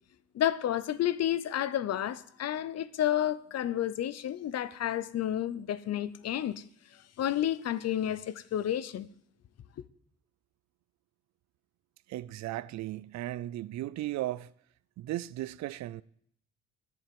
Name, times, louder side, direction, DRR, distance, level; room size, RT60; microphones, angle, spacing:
voice 1, 0.3-6.6 6.9-9.1, left 11 dB, 60° left, 0.7 m, -31 dB
voice 2, 12.1-14.5 15.0-16.0, right 15 dB, 65° right, 0.4 m, -36 dB
11.0 x 7.2 x 7.6 m
cardioid pair, 90°, 30 cm